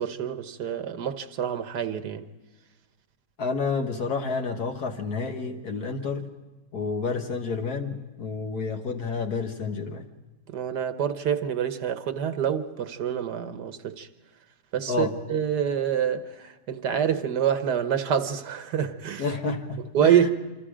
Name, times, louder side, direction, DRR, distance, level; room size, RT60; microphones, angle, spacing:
voice 1, 0.0-2.3 10.5-14.1 14.7-19.2 19.9-20.3, right 8 dB, 80° right, 1.7 m, -26 dB
voice 2, 3.4-6.3 6.7-10.1 14.9-15.2 19.2-20.3, left 4 dB, 70° left, 1.9 m, -30 dB
27.5 x 25.5 x 5.0 m
omnidirectional pair, 1.7 m